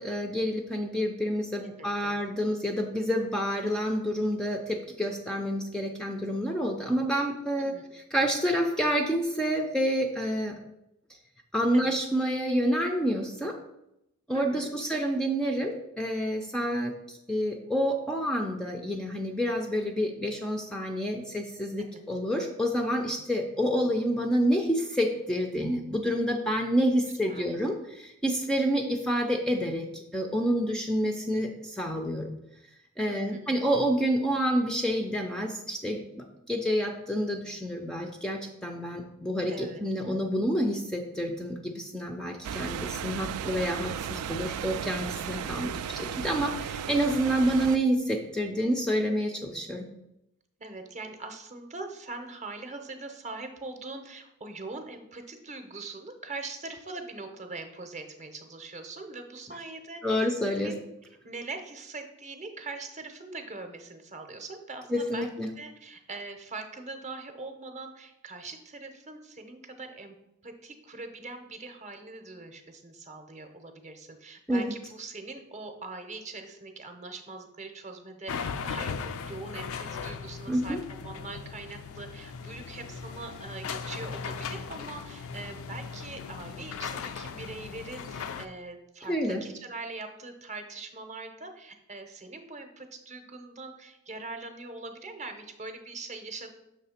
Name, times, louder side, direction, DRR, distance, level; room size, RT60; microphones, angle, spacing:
voice 1, 0.0-10.6 11.5-13.6 14.3-32.3 33.0-49.9 60.0-60.7 64.9-65.5 74.5-74.6 80.5-80.8 89.0-89.4, equal, 5° left, 3 dB, 0.4 m, -28 dB
voice 2, 1.6-2.2 7.5-7.9 11.7-11.9 14.3-14.7 21.8-22.0 27.2-27.6 33.1-33.6 39.5-39.8 45.4-45.9 50.6-60.8 61.2-65.3 65.6-70.2 70.4-96.5, right 3 dB, 30° right, 6 dB, 0.7 m, -42 dB
sound 1, 42.4-47.8, right 8 dB, 75° right, 0.3 m, -35 dB
sound 2, 78.3-88.4, left 6 dB, 65° left, 0.4 m, -38 dB
6.6 x 3.2 x 5.6 m, 0.85 s
head